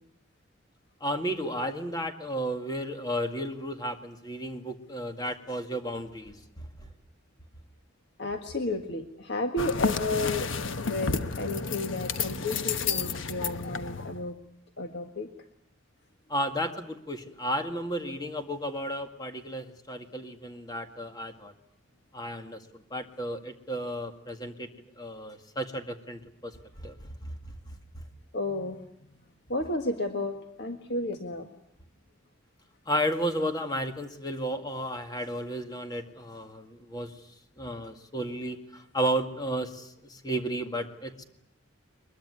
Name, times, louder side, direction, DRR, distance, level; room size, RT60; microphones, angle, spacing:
voice 1, 1.0-6.9 16.3-21.5 22.1-24.7 25.0-27.3 32.9-37.1 37.6-41.2, equal, 20° left, 6 dB, 2.0 m, -33 dB
voice 2, 8.2-10.5 10.8-14.4 14.8-15.3 28.3-28.9 29.5-31.5, left 2 dB, 55° left, 5 dB, 1.7 m, -32 dB
sound 1, 9.6-14.2, left 5 dB, 75° left, 1.1 m, -31 dB
22.0 x 22.0 x 9.7 m, 0.77 s
head